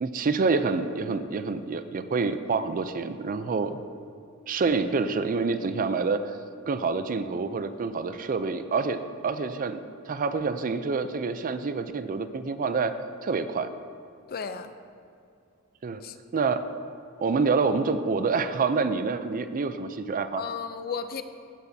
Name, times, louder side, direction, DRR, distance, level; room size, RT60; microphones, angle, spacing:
voice 1, 0.0-3.8 4.5-6.4 6.7-9.8 10.1-13.7 15.8-16.0 16.3-16.6 17.2-20.4, right 4 dB, 40° right, 11 dB, 0.4 m, -27 dB
voice 2, 14.3-14.7 16.0-16.4 20.3-21.2, left 6 dB, 45° left, 10 dB, 0.5 m, -35 dB
15.5 x 8.4 x 2.7 m, 2.5 s
head